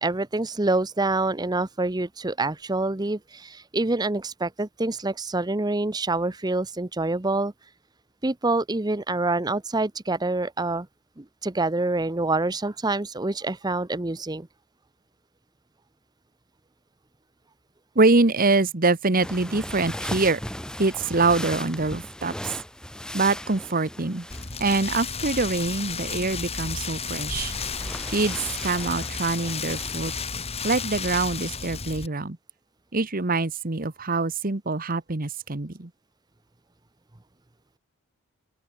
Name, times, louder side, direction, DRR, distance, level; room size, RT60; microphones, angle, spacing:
voice 1, 0.0-7.5 8.2-10.9 11.2-14.5, right 2 dB, 20° right, 0.8 m, -26 dB
voice 2, 17.9-20.4 20.8-22.5 23.1-24.3 24.6-27.5 28.1-30.1 30.6-32.4 32.9-35.9, right 3 dB, 40° right, 1.2 m, -24 dB
sound 1, 19.2-25.2 27.3-30.2, left 1 dB, 5° left, 3.3 m, -37 dB
Rain, 24.3-32.1, left 5 dB, 30° left, 3.3 m, -32 dB
open air
head